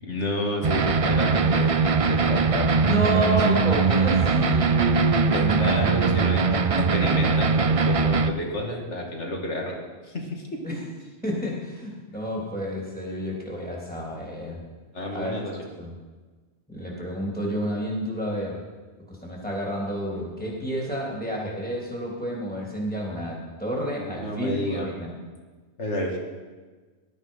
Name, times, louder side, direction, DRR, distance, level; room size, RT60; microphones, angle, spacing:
voice 1, 0.0-2.8 3.0-3.6 5.3-9.7 10.1-10.6 14.9-15.7 24.0-24.9 25.8-26.2, left 1 dB, 75° left, 0 dB, 2.7 m, -30 dB
sound 1, 0.6-8.3, right 4 dB, 40° right, 0.6 m, -21 dB
voice 2, 2.6-7.3 10.6-10.8 11.2-14.6 15.1-15.3 15.8-15.9 16.7-18.6 19.1-25.1, equal, 5° left, -3 dB, 3.3 m, -30 dB
18.5 x 12.5 x 5.7 m, 1.4 s
omnidirectional pair, 1.2 m